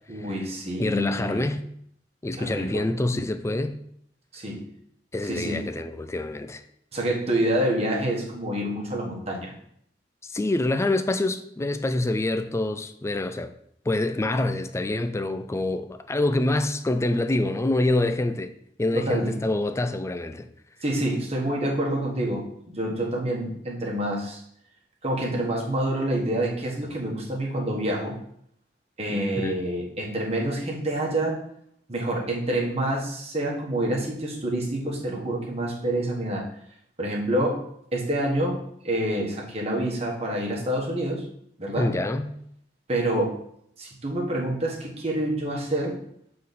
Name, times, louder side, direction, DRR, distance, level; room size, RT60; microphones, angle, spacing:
voice 1, 0.1-1.4 2.3-2.9 4.3-4.7 5.2-5.6 6.9-9.5 18.9-19.3 20.8-24.4 25.0-28.2 29.0-31.4 31.9-36.5 37.0-37.6 37.9-41.2 41.6-41.9 42.9-43.4 43.8-46.0, right 1 dB, 35° right, 1.4 m, -27 dB
voice 2, 0.8-1.6 2.2-3.8 5.1-6.6 10.2-13.5 13.9-18.5 18.8-20.5 29.1-29.6 41.8-42.3, left 2 dB, 15° left, 0.4 m, -26 dB
7.5 x 3.9 x 4.1 m
head